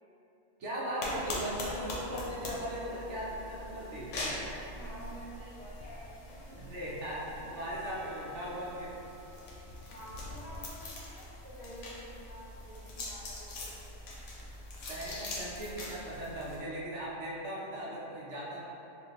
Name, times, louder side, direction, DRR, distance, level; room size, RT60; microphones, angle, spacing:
voice 1, 0.6-4.1 6.6-8.9 14.9-18.6, equal, 70° right, -6 dB, 0.9 m, -38 dB
sound 1, 1.0-16.6, left 1 dB, 75° left, 1.0 m, -42 dB
voice 2, 4.7-6.6 9.9-13.7, equal, 40° left, -12 dB, 1.0 m, -49 dB
Percussion, 7.7-12.7, right 1 dB, 55° right, 0.3 m, -57 dB
3.4 x 2.4 x 2.8 m, 3.0 s
omnidirectional pair, 1.3 m